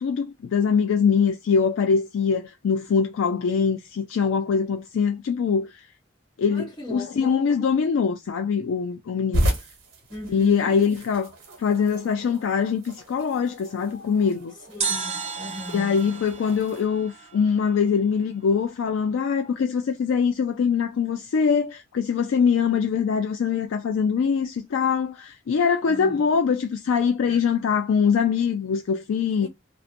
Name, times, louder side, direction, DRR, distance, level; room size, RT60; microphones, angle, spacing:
voice 1, 0.0-5.7 6.4-9.5 10.3-11.3 11.6-14.5 15.7-29.5, left 6 dB, 80° left, 0.3 m, -23 dB
voice 2, 6.5-7.5 10.1-10.8 14.7-16.0 25.8-26.3 27.3-27.4 29.4-29.5, left 1 dB, 25° left, 1.0 m, -37 dB
sound 1, 9.3-16.9, equal, 85° right, 0.9 m, -33 dB
sound 2, 14.8-17.9 18.1-18.2, right 5 dB, 30° right, 0.6 m, -33 dB
2.5 x 2.1 x 2.5 m
head